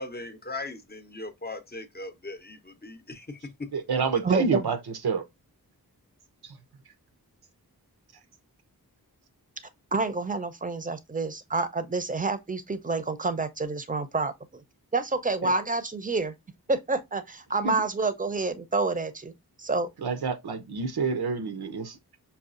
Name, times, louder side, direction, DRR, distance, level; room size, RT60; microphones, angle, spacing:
voice 1, 0.0-3.7, left 2 dB, 25° left, 0.6 m, -39 dB
voice 2, 3.7-4.8 5.0-5.2 15.4-15.5 17.6-17.8 20.0-22.0, right 5 dB, 80° right, 0.7 m, -28 dB
voice 3, 4.2-4.7 9.9-14.6 14.9-16.3 16.7-19.3 19.6-19.9, right 3 dB, 20° right, 0.6 m, -28 dB
5.5 x 2.3 x 2.5 m
wide cardioid pair, 55°, 37 cm